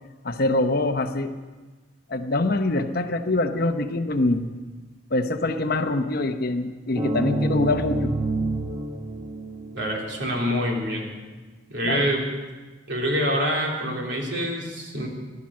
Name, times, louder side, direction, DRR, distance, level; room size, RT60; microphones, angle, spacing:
voice 1, 0.2-1.3 2.1-4.5 5.1-8.1 11.8-12.1, left 2 dB, 50° left, 7 dB, 0.9 m, -24 dB
sound 1, 6.9-10.6, right 2 dB, 25° right, 1.1 m, -28 dB
voice 2, 9.7-11.1 11.7-12.3 12.9-15.1, equal, 60° right, -1 dB, 3.4 m, -26 dB
15.0 x 11.5 x 7.5 m, 1.3 s
head